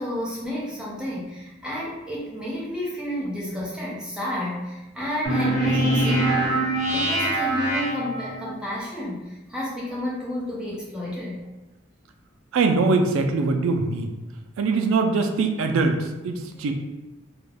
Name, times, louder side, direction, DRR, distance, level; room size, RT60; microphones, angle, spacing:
voice 1, 0.0-11.5, equal, 5° right, -6 dB, 0.4 m, -31 dB
sound 1, 5.2-8.5, right 1 dB, 20° left, 1.1 m, -23 dB
voice 2, 12.5-14.2 14.6-16.7, right 3 dB, 90° right, 5 dB, 0.3 m, -22 dB
2.3 x 2.1 x 3.2 m, 1.1 s
head